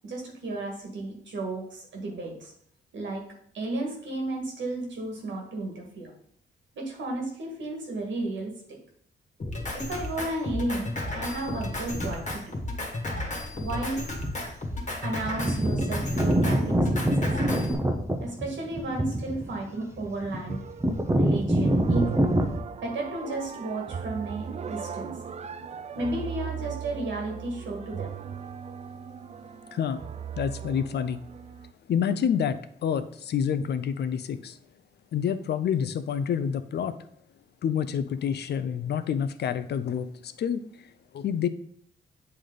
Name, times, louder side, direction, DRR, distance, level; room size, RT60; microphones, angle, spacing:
voice 1, 0.0-2.5 2.9-3.2 3.5-6.1 6.7-8.8 9.7-12.6 13.5-14.0 15.0-17.3 18.2-20.6 21.1-22.3 22.8-25.1 25.9-28.1, right 2 dB, 75° right, 0 dB, 1.8 m, -33 dB
Drum kit, 9.4-17.7, left 2 dB, 40° left, 1.5 m, -33 dB
sound 1, 11.9-12.3 13.4-13.5 14.2-14.5 14.8-14.9 15.2-22.6, right 1 dB, 15° right, 0.8 m, -25 dB
sound 2, 20.5-21.2 21.6-31.7, right 7 dB, 35° right, 0.4 m, -38 dB
voice 2, 30.4-31.2 31.9-34.6 35.1-36.9 37.6-40.6 41.1-41.5, left 8 dB, 60° left, 12 dB, 0.5 m, -28 dB
8.3 x 3.3 x 3.9 m, 0.65 s
cardioid pair, 80°, 19 cm